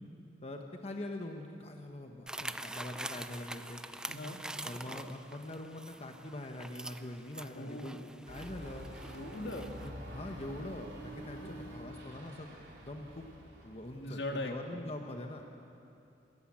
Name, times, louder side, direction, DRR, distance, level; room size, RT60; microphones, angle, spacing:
voice 1, 0.4-3.8 4.6-8.0 8.3-8.9 9.8-13.3 13.6-15.4, left 1 dB, 35° left, 3 dB, 1.1 m, -43 dB
sound 1, 2.3-9.9, right 1 dB, 5° right, 0.4 m, -45 dB
voice 2, 4.1-4.4 7.5-8.2 9.1-9.7 11.3-11.6 14.0-14.8, left 1 dB, 70° left, 3 dB, 2.1 m, -40 dB
sound 2, 8.3-14.4, equal, 65° right, 4.5 m, -48 dB
27.5 x 14.0 x 8.7 m, 2.8 s
head